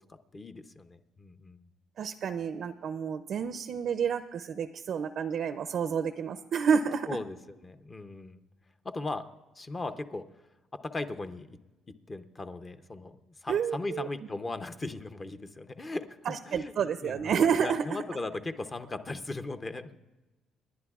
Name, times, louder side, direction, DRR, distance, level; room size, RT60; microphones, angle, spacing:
voice 1, 0.1-1.7 7.1-7.4 7.6-8.4 8.8-9.3 9.5-10.2 10.7-11.6 12.1-13.1 13.4-20.0, left 2 dB, 25° left, 9 dB, 0.6 m, -38 dB
voice 2, 2.0-7.1 13.5-14.1 16.3-18.0, right 7 dB, 60° right, 10 dB, 0.5 m, -29 dB
29.0 x 10.5 x 2.4 m, 1.1 s
cardioid pair, 110°, 0 cm